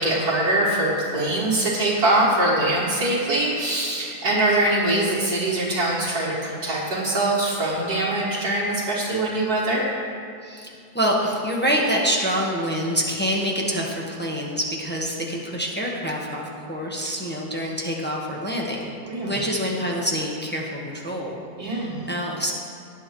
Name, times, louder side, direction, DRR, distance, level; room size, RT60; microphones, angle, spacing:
voice 1, 0.0-9.9 19.0-19.4 21.6-22.1, right 1 dB, 75° right, -8 dB, 2.3 m, -23 dB
voice 2, 10.9-18.9 19.2-22.5, equal, 5° left, -2 dB, 1.2 m, -26 dB
18.0 x 8.9 x 3.1 m, 2.3 s
omnidirectional pair, 1.6 m